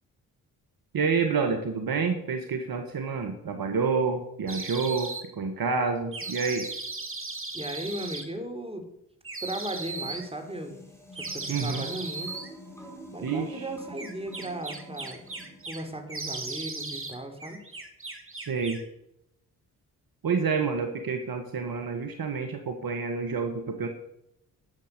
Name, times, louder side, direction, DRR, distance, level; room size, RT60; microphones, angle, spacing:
voice 1, 0.9-6.7 11.5-11.9 13.2-13.6 18.3-18.8 20.2-23.9, right 5 dB, 55° right, 5 dB, 1.5 m, -28 dB
sound 1, 4.5-5.2 6.1-8.2 9.2-10.3 11.1-12.5 14.0-15.8 16.1-17.2 17.4-18.9, right 3 dB, 30° right, 2.6 m, -37 dB
voice 2, 7.5-8.8 9.4-10.8 11.2-12.3 13.1-15.2 15.7-17.6, right 1 dB, 15° right, 4 dB, 3.4 m, -36 dB
sound 2, 9.8-16.1, equal, 5° left, 4.5 m, -47 dB
11.5 x 7.3 x 6.8 m, 0.82 s
hypercardioid pair, 40°, 43 cm